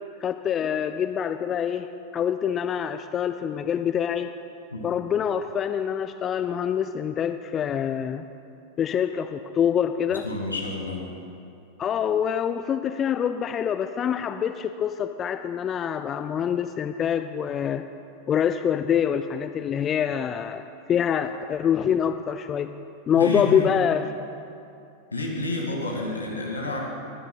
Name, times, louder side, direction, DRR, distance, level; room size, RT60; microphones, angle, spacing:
voice 1, 0.2-1.9 2.1-4.3 4.8-8.3 8.8-10.3 11.8-17.8 18.3-22.7 23.1-24.1, left 8 dB, 25° left, 9 dB, 0.3 m, -25 dB
voice 2, 10.1-11.0 23.1-23.7 25.1-26.8, left 2 dB, 80° left, 0 dB, 1.7 m, -29 dB
19.0 x 11.0 x 2.2 m, 2.6 s
figure-of-eight pair, 90°, 0 cm